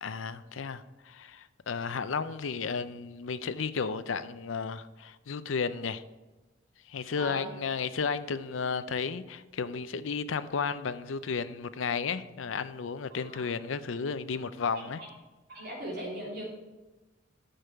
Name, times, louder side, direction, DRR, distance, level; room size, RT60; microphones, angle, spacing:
voice 1, 0.0-6.0 6.9-15.0, left 5 dB, 80° left, 0.5 m, -33 dB
voice 2, 7.1-7.5 13.1-13.4 14.7-15.1 15.5-16.4, equal, 50° right, 3.4 m, -39 dB
10.0 x 6.8 x 4.5 m
head